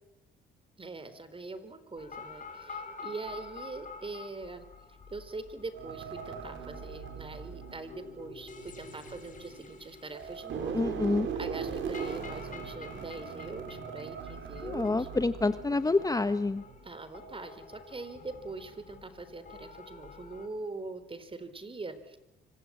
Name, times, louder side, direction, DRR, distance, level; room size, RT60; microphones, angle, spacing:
voice 1, 0.8-15.1 16.8-22.2, right 3 dB, 25° right, 12 dB, 4.1 m, -43 dB
sound 1, 2.0-20.5, left 4 dB, 40° left, 6.0 m, -49 dB
sound 2, 5.7-9.8 10.1-16.8 17.2-17.5, right 6 dB, 75° right, 4.9 m, -40 dB
voice 2, 10.7-11.3 14.6-16.6, left 3 dB, 20° left, 12 dB, 1.1 m, -28 dB
25.5 x 25.0 x 8.7 m, 0.94 s
cardioid pair, 90°, 20 cm